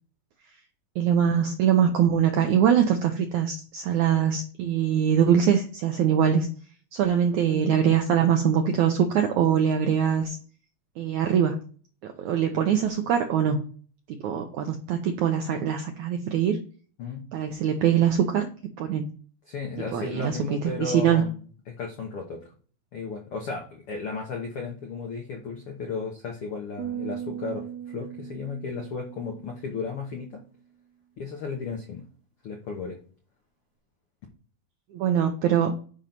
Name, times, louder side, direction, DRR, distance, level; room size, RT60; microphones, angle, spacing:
voice 1, 1.0-6.5 6.9-10.4 11.0-11.6 12.0-13.7 14.1-16.6 17.3-18.5 18.8-19.1 19.9-21.3 34.9-35.7, right 8 dB, 80° right, 4 dB, 1.7 m, -23 dB
voice 2, 19.5-22.4 22.9-27.7 27.9-30.4 31.2-32.0 32.4-33.0, left 4 dB, 80° left, 1 dB, 1.2 m, -34 dB
sound 1, 26.8-30.2, right 10 dB, 65° right, 2.0 m, -38 dB
6.3 x 5.2 x 5.8 m, 0.42 s
omnidirectional pair, 4.4 m